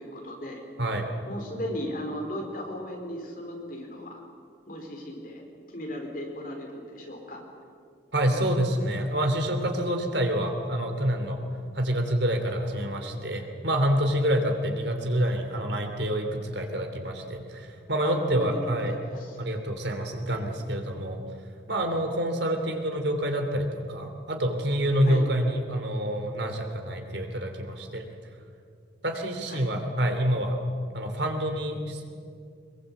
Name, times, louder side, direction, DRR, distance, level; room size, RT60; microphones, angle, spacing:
voice 1, 0.0-0.6 1.3-4.2 4.7-7.4 18.0-18.6 18.9-19.4 25.0-25.2 29.5-29.6, equal, 50° left, 1 dB, 4.5 m, -37 dB
voice 2, 8.1-11.4 11.7-19.0 19.4-21.2 21.7-28.1 29.0-30.6 30.9-32.0, equal, 65° right, 5 dB, 3.2 m, -27 dB
23.5 x 22.0 x 8.4 m, 2.3 s
head